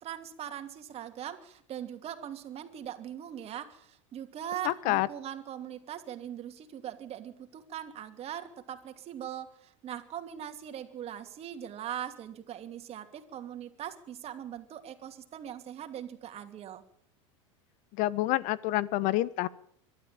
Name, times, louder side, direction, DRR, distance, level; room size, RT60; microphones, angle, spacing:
voice 1, 0.0-16.8, right 10 dB, 40° right, 7 dB, 2.8 m, -41 dB
voice 2, 4.6-5.1 18.0-19.5, left 16 dB, 55° left, 19 dB, 1.2 m, -27 dB
23.0 x 12.5 x 9.0 m, 0.67 s
hypercardioid pair, 95°, 16 cm